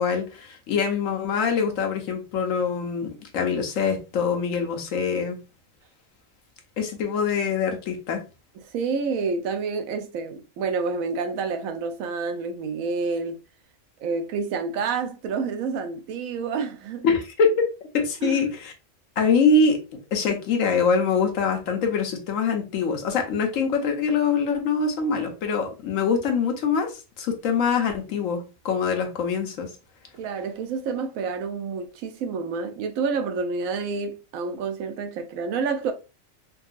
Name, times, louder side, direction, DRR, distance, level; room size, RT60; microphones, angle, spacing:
voice 1, 0.0-5.4 6.8-8.2 17.0-17.5 17.9-18.7 19.2-19.8 20.1-29.7, left 5 dB, 75° left, 1.1 m, -24 dB
voice 2, 8.7-13.4 14.0-17.1 18.2-18.4 30.1-35.9, right 5 dB, 80° right, 1.0 m, -28 dB
3.7 x 2.3 x 2.4 m
omnidirectional pair, 1.4 m